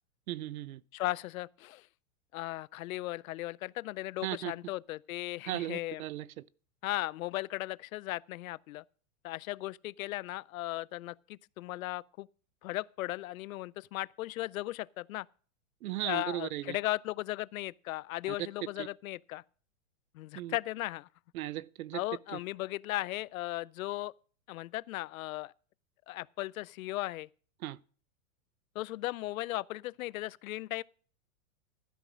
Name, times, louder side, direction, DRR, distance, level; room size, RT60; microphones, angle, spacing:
voice 1, 0.3-0.8 4.2-4.5 5.5-6.3 15.8-16.8 18.8-18.9 20.3-20.6 21.3-22.0 22.3-22.4 27.6-27.8, right 15 dB, 90° right, 0.6 m, -36 dB
voice 2, 0.9-1.9 2.3-6.0 6.8-8.8 9.2-12.3 12.6-15.3 16.0-19.4 20.1-21.1 21.9-24.1 24.5-25.5 26.1-27.3 28.8-30.8, left 17 dB, 80° left, 0.5 m, -37 dB
12.5 x 6.1 x 5.1 m
supercardioid pair, 165°, 41 cm